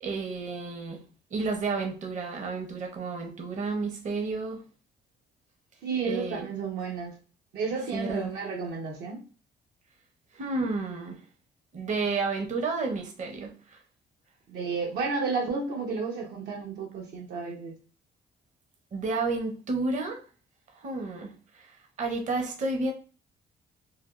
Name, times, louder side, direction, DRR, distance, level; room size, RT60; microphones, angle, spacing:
voice 1, 0.0-4.6 6.0-6.5 7.9-8.4 10.3-11.2 11.7-13.8 18.9-20.2 20.7-22.9, right 3 dB, 50° right, 0.8 m, -31 dB
voice 2, 5.8-7.2 7.5-9.2 14.5-17.7, right 4 dB, 80° right, 0.8 m, -32 dB
3.3 x 2.3 x 2.4 m
cardioid pair, 90°, 16 cm